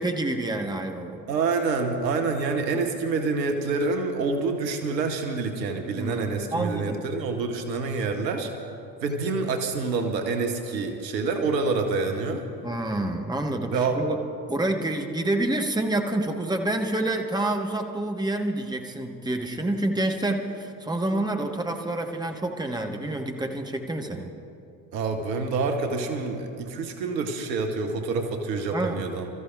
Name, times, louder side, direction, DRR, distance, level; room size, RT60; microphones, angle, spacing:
voice 1, 0.0-1.2 5.9-7.0 12.6-14.2 14.5-24.3 28.7-29.0, right 1 dB, 10° right, 3 dB, 1.3 m, -28 dB
voice 2, 1.3-8.5 9.0-12.5 13.7-14.0 24.9-29.3, right 4 dB, 80° right, 5 dB, 1.1 m, -27 dB
29.0 x 14.0 x 2.4 m, 2.6 s
figure-of-eight pair, 55°, 49 cm